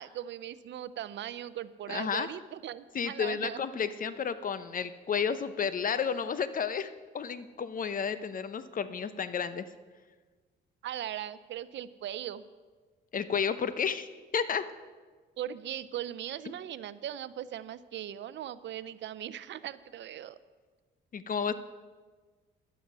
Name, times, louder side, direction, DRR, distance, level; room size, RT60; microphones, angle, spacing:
voice 1, 0.0-3.6 10.8-12.4 15.4-20.4, right 11 dB, 65° right, 15 dB, 0.6 m, -39 dB
voice 2, 1.9-2.3 2.9-9.6 13.1-14.1 14.3-14.6 21.1-21.5, left 6 dB, 45° left, 13 dB, 0.8 m, -31 dB
12.0 x 11.0 x 6.1 m, 1.4 s
cardioid pair, 90°, 20 cm